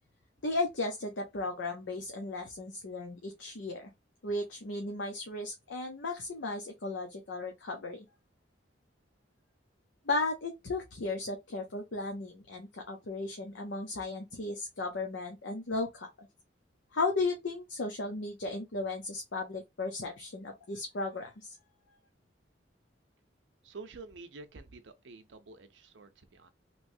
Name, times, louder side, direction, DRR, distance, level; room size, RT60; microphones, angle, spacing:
voice 1, 0.4-3.9 4.2-8.0 10.0-16.3 16.9-21.5, left 3 dB, 85° left, 0.7 m, -35 dB
voice 2, 23.6-26.5, right 3 dB, 80° right, 0.6 m, -49 dB
3.1 x 2.9 x 2.6 m
head